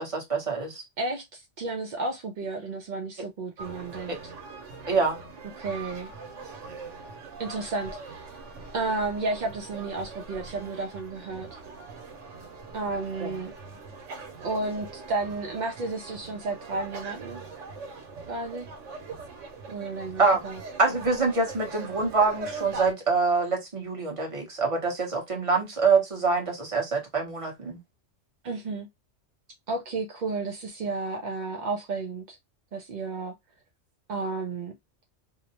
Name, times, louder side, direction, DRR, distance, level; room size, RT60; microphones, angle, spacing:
voice 1, 0.0-0.8 4.9-5.2 13.2-13.3 20.2-20.4 20.8-27.8, right 4 dB, 30° right, 0.9 m, -25 dB
voice 2, 1.0-4.3 5.6-6.1 7.4-8.3 8.7-11.5 12.7-13.5 14.4-17.4 18.3-18.7 19.7-20.6 28.4-28.9 29.7-32.4 32.7-33.4 34.1-34.7, right 3 dB, 60° right, 0.5 m, -32 dB
sound 1, 3.6-22.9, right 4 dB, 85° right, 1.2 m, -42 dB
2.7 x 2.0 x 2.7 m
omnidirectional pair, 1.3 m